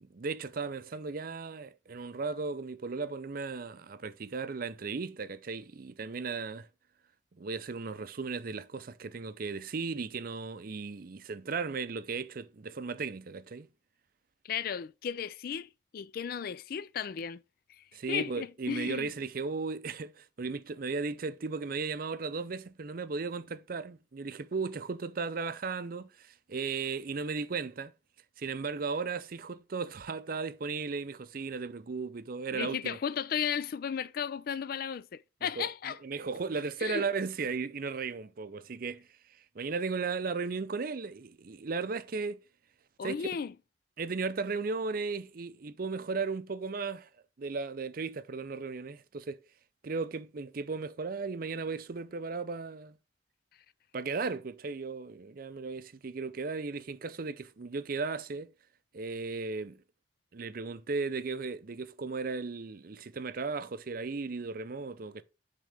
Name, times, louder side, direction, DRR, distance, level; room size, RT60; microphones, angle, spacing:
voice 1, 0.0-6.7 7.4-13.7 17.9-27.9 28.4-33.0 35.4-39.1 39.5-42.4 43.0-43.1 44.0-47.1 47.4-49.4 49.8-53.0 53.9-58.5 58.9-59.8 60.3-65.2, right 4 dB, 50° right, 0.5 m, -36 dB
voice 2, 14.4-17.4 18.1-19.1 32.5-36.0 36.8-37.0 43.0-43.5, left 7 dB, 50° left, 0.3 m, -35 dB
10.0 x 3.7 x 3.4 m
head